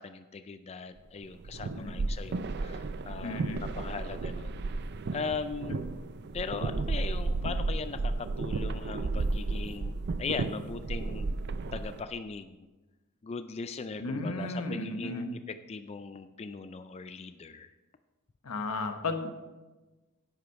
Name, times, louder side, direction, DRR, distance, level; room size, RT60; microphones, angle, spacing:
voice 1, 0.0-4.6 5.1-5.8 6.3-11.3 11.7-12.6 13.2-17.7, left 5 dB, 30° left, 10 dB, 0.3 m, -39 dB
sound 1, 1.2-12.0, right 3 dB, 50° right, 0.5 m, -33 dB
voice 2, 3.2-3.6 5.7-5.8 14.0-15.3 18.4-19.4, left 2 dB, 90° left, 6 dB, 1.1 m, -34 dB
10.0 x 8.2 x 4.7 m, 1.2 s
head